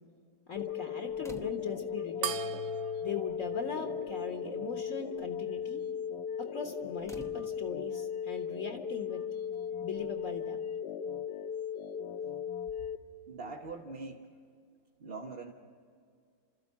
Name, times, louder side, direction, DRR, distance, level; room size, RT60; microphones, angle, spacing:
voice 1, 0.5-2.4 3.0-5.8 6.4-9.2 9.8-10.6, left 5 dB, 55° left, 3 dB, 1.8 m, -40 dB
sound 1, 0.6-13.0, left 8 dB, 85° left, 1.4 m, -37 dB
sound 2, 1.2-1.9 3.0-3.1 3.5-3.8 4.1-4.4 7.0-8.0 9.5-9.6, right 1 dB, 5° left, 0.7 m, -51 dB
sound 3, 2.2-5.0, right 10 dB, 80° right, 1.3 m, -41 dB
voice 2, 13.3-14.3 15.0-15.5, right 3 dB, 40° right, -1 dB, 1.2 m, -42 dB
30.0 x 13.5 x 8.4 m, 2.1 s
omnidirectional pair, 1.7 m